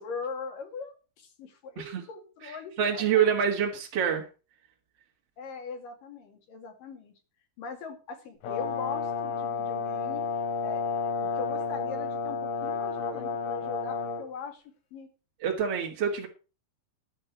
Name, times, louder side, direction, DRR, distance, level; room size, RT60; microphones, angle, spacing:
voice 1, 0.0-3.3 5.4-7.1 7.6-10.3 10.6-10.8 11.2-14.6 14.9-15.1, left 5 dB, 55° left, 6 dB, 3.3 m, -40 dB
voice 2, 2.8-4.3 15.4-16.3, right 7 dB, 50° right, -1 dB, 1.9 m, -26 dB
Brass instrument, 8.4-14.2, left 6 dB, 85° left, 5.4 m, -31 dB
11.5 x 5.4 x 8.3 m, 0.34 s
omnidirectional pair, 5.5 m